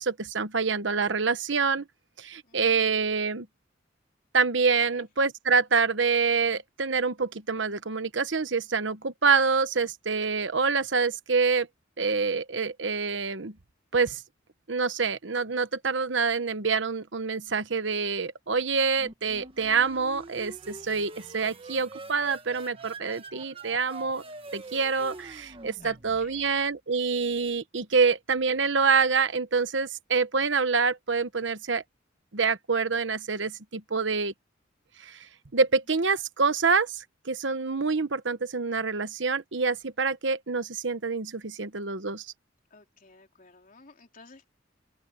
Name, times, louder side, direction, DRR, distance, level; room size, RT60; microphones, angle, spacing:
voice 1, 0.0-1.9 2.2-3.5 4.3-11.7 12.0-13.5 13.9-14.2 14.7-24.2 24.5-31.8 32.3-34.3 35.0-35.3 35.5-42.3, right 5 dB, 70° right, 1.1 m, -26 dB
voice 2, 2.4-2.9 4.8-5.1 25.8-26.5 42.7-44.5, left 4 dB, 45° left, 3.6 m, -53 dB
sound 1, 19.0-26.6, right 3 dB, 30° right, 1.4 m, -45 dB
open air
head